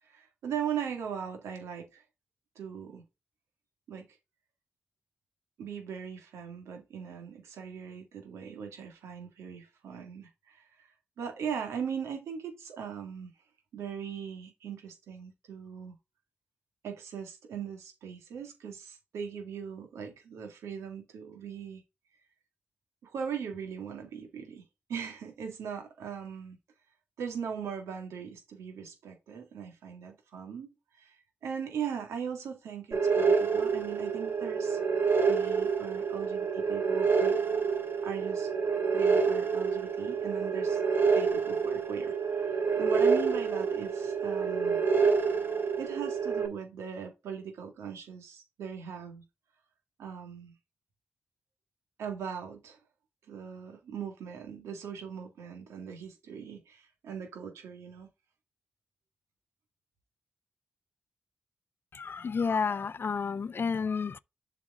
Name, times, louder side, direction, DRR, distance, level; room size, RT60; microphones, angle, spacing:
voice 1, 0.0-2.0 2.6-3.0 3.9-4.0 5.6-10.9 11.2-13.3 13.7-15.9 16.8-21.8 23.0-24.6 24.9-26.6 27.2-31.2 31.4-34.8 35.3-37.4 38.0-38.5 38.9-40.8 41.1-44.8 45.8-49.2 50.0-50.5 52.0-52.8 53.3-58.1, right 7 dB, 90° right, 2.0 m, -39 dB
sound 1, 32.9-46.5, right 5 dB, 55° right, 2.8 m, -28 dB
voice 2, 61.9-64.2, left 5 dB, 55° left, 0.4 m, -31 dB
7.3 x 5.0 x 3.7 m
supercardioid pair, 45°, 5 cm